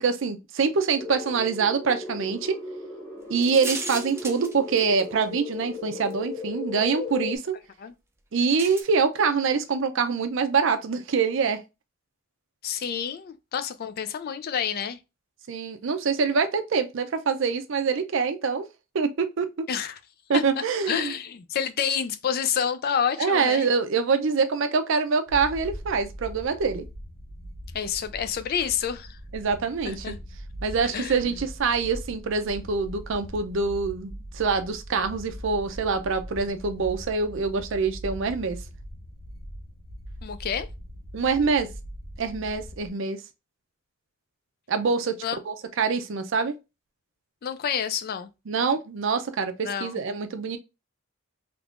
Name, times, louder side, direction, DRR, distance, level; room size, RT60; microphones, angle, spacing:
voice 1, 0.0-2.6 3.3-7.5 8.3-11.6 15.5-18.6 18.9-19.7 20.3-21.1 23.2-26.9 29.3-30.1 30.6-38.6 41.1-41.7 42.2-43.2 44.7-45.1 45.5-46.6 48.5-50.6, right 5 dB, 65° right, 0.5 m, -25 dB
sound 1, 1.0-7.4, left 3 dB, 10° left, 1.3 m, -37 dB
sound 2, 3.4-5.2 6.1-6.2 8.6-8.8, right 3 dB, 10° right, 0.5 m, -35 dB
voice 2, 12.6-15.0 19.7-20.0 20.3-20.4 20.9-23.7 27.7-29.2 29.8-30.2 30.8-31.2 40.2-40.7 45.2-45.4 47.4-48.3 49.6-49.9, left 8 dB, 50° left, 0.4 m, -28 dB
sound 3, 25.3-42.9, equal, 90° left, 0.8 m, -41 dB
3.6 x 2.9 x 2.4 m
head